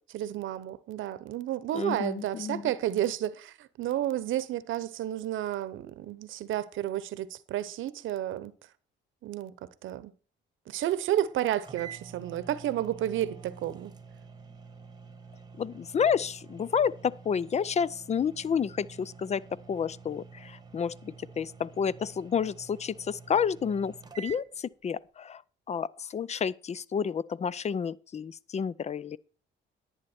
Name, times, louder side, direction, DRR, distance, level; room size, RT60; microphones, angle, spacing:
voice 1, 0.1-8.5 9.2-10.1 10.7-13.9, right 12 dB, 80° right, 0.9 m, -31 dB
voice 2, 1.7-2.6 15.6-19.4 19.7-25.4 25.7-29.2, left 7 dB, 35° left, 0.5 m, -30 dB
sound 1, 11.3-11.4 11.6-24.4, right 5 dB, 20° right, 1.3 m, -48 dB
11.0 x 9.4 x 4.3 m
cardioid pair, 90°, 20 cm